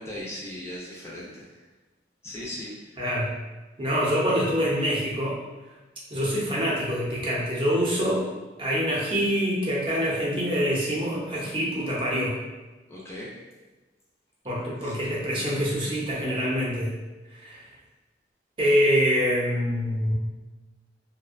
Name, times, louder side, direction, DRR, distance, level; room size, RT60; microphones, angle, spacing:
voice 1, 0.0-1.6 2.2-2.9 12.9-13.3 14.8-14.9, left 1 dB, 15° left, -6 dB, 0.4 m, -38 dB
voice 2, 3.0-3.3 3.8-5.4 6.1-8.3 8.6-12.4 14.4-16.9 17.3-17.7 18.6-20.1, equal, 30° right, -5 dB, 0.6 m, -25 dB
2.5 x 2.1 x 2.4 m, 1.2 s
head